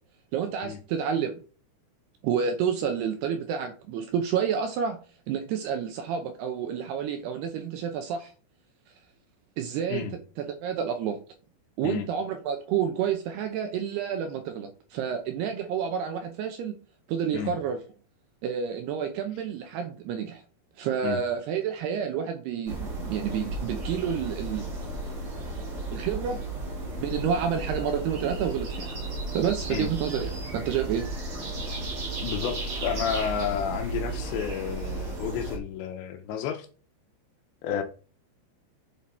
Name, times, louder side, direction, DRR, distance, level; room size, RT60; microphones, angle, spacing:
voice 1, 0.3-1.4 2.2-5.0 5.3-8.3 9.6-10.1 10.4-11.2 11.8-16.7 17.1-17.8 18.4-20.4 20.8-24.7 25.9-26.4 27.0-29.0 29.3-31.1, right 8 dB, 75° right, 2.5 m, -29 dB
sound 1, 22.7-35.6, right 2 dB, 35° right, 2.3 m, -34 dB
voice 2, 32.2-36.7 37.6-37.8, left 8 dB, 75° left, 2.8 m, -31 dB
7.7 x 7.3 x 4.3 m
omnidirectional pair, 5.6 m